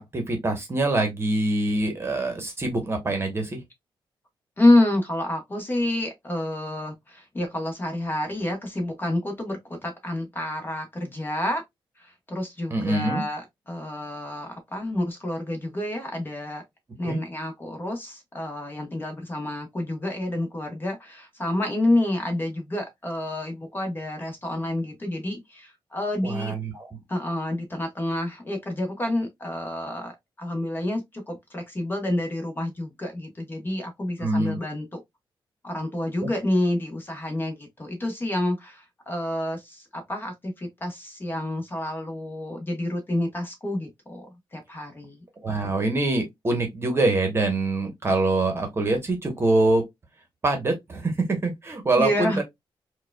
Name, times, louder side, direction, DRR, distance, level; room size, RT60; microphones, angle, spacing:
voice 1, 0.1-3.6 12.7-13.2 17.0-17.2 26.2-26.9 34.2-34.6 36.2-36.3 45.4-49.8 50.4-52.4, right 2 dB, 30° right, 1.0 m, -24 dB
voice 2, 4.6-11.6 12.0-16.6 17.0-26.5 27.1-30.1 30.4-35.0 35.6-44.3 44.5-45.2 52.0-52.4, left 1 dB, 25° left, 1.1 m, -28 dB
4.6 x 2.3 x 2.2 m
wide cardioid pair, 140°, 9 cm